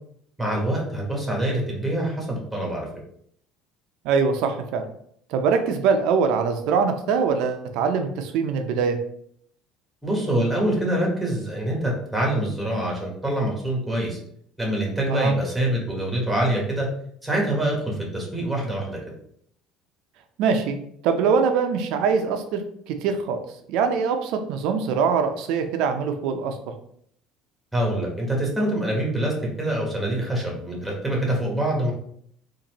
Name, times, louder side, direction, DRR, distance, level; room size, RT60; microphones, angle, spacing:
voice 1, 0.4-2.9 10.0-14.2 14.6-16.9 17.2-19.0 27.7-31.9, right 1 dB, ahead, -2 dB, 1.2 m, -25 dB
voice 2, 4.0-4.9 5.3-9.0 15.1-15.4 20.4-20.8 21.0-22.6 22.9-23.4 23.7-26.6, right 5 dB, 70° right, 6 dB, 0.5 m, -23 dB
3.9 x 2.6 x 2.9 m, 0.67 s
cardioid pair, 125°, 0 cm